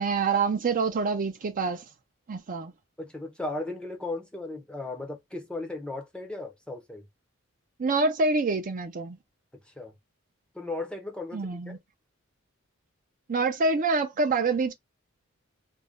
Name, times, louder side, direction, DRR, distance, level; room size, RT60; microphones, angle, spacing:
voice 1, 0.0-1.8 2.3-2.7 7.8-9.2 11.3-11.8 13.3-14.7, right 3 dB, 40° right, 0.5 m, -26 dB
voice 2, 3.0-7.0 9.8-9.9 10.5-11.8, left 2 dB, 5° left, 0.6 m, -36 dB
2.5 x 2.1 x 3.5 m
head